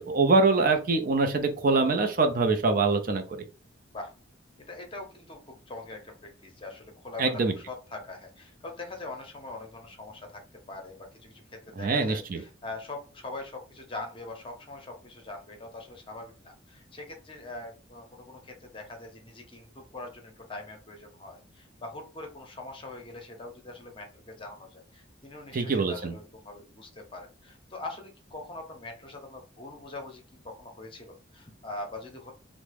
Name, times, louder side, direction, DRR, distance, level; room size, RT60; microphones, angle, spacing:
voice 1, 0.0-3.2 7.2-7.5 11.8-12.4 25.5-26.1, right 3 dB, 45° right, 6 dB, 0.4 m, -24 dB
voice 2, 4.7-10.4 10.7-32.3, left 2 dB, 25° left, 3 dB, 0.7 m, -42 dB
3.4 x 2.0 x 3.3 m, 0.33 s
head